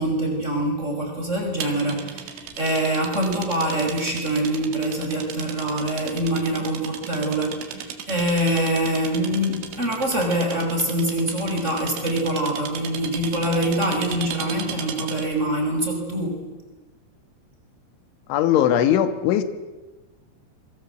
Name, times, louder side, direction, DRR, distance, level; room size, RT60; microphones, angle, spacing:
voice 1, 0.0-16.4, right 1 dB, 15° right, 2 dB, 5.5 m, -24 dB
sound 1, 1.6-15.4, right 8 dB, 75° right, 4.2 m, -36 dB
voice 2, 18.3-19.4, left 10 dB, 85° left, 11 dB, 3.8 m, -19 dB
27.0 x 23.5 x 8.0 m, 1.2 s
omnidirectional pair, 5.3 m